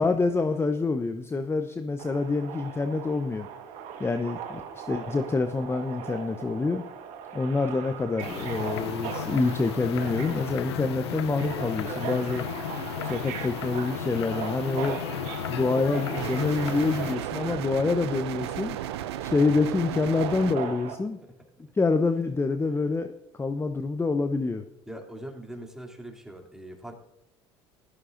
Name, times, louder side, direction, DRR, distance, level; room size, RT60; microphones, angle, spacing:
voice 1, 0.0-3.5 4.0-6.8 7.3-12.5 13.0-15.0 15.5-18.8 19.2-21.2 21.7-24.6, left 3 dB, 20° left, 8 dB, 0.8 m, -27 dB
Subway metro underground, 2.0-20.9, right 7 dB, 65° right, 1.5 m, -39 dB
sound 1, 8.2-17.1, left 11 dB, 85° left, 0.6 m, -34 dB
sound 2, 16.2-20.6, right 13 dB, 80° right, 0.4 m, -34 dB
voice 2, 20.4-21.0 24.9-26.9, right 1 dB, 5° right, 1 dB, 2.8 m, -42 dB
16.5 x 13.0 x 2.6 m, 0.87 s
hypercardioid pair, 65°, 14 cm